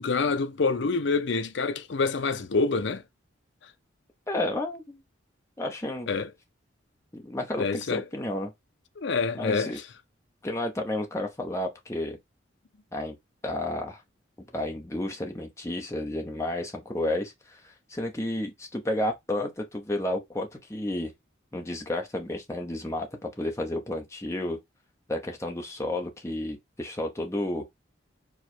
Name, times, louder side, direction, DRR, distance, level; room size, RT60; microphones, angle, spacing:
voice 1, 0.0-3.0 6.1-6.3 7.6-8.0 9.0-9.7, left 4 dB, 60° left, 0.5 m, -26 dB
voice 2, 4.3-5.0 5.6-6.1 7.1-8.5 9.3-9.8 10.4-12.2 12.9-13.2 13.4-14.0 14.5-17.6 17.9-21.1 21.5-24.6 25.1-27.6, left 1 dB, 15° left, 0.9 m, -31 dB
4.8 x 2.3 x 4.4 m
head